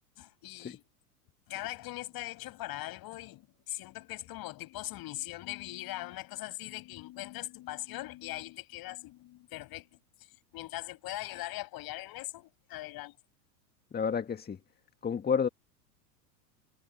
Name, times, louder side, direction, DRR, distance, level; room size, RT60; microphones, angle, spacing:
voice 1, 0.2-0.8 1.5-10.0 10.5-13.2, left 17 dB, 45° left, 7.7 m, -41 dB
voice 2, 13.9-14.6 15.0-15.5, left 6 dB, 20° left, 1.8 m, -29 dB
hypercardioid pair, 95°, 50 cm